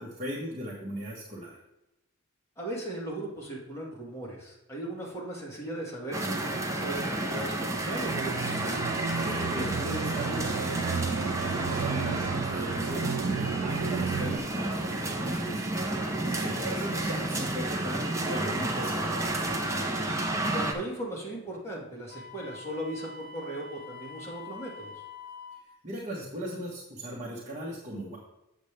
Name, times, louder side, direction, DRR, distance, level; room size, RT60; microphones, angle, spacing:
voice 1, 0.0-1.6 9.1-15.6 16.2-19.5 25.6-28.2, equal, 30° right, -5 dB, 1.3 m, -38 dB
voice 2, 2.6-8.7 16.2-16.6 20.5-24.9, right 1 dB, 10° left, -4 dB, 1.8 m, -37 dB
sound 1, 6.1-20.7, right 2 dB, 15° right, 0.7 m, -31 dB
sound 2, 8.0-14.4, right 6 dB, 50° right, 0.3 m, -33 dB
Wind instrument woodwind instrument, 22.1-25.7, left 4 dB, 45° left, 1.4 m, -45 dB
8.1 x 6.7 x 3.3 m, 0.91 s
head